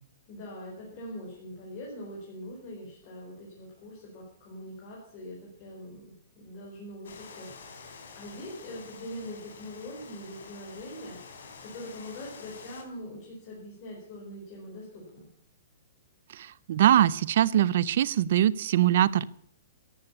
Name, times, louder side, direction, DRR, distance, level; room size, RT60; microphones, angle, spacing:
voice 1, 0.3-7.9 8.1-11.2 11.6-15.3, left 1 dB, 25° left, -3 dB, 4.7 m, -43 dB
sound 1, 7.0-12.8, left 5 dB, 75° left, 3.8 m, -48 dB
voice 2, 16.3-19.2, right 11 dB, 45° right, 20 dB, 0.6 m, -23 dB
14.0 x 11.0 x 8.6 m, 0.66 s
hypercardioid pair, 175°, 0 cm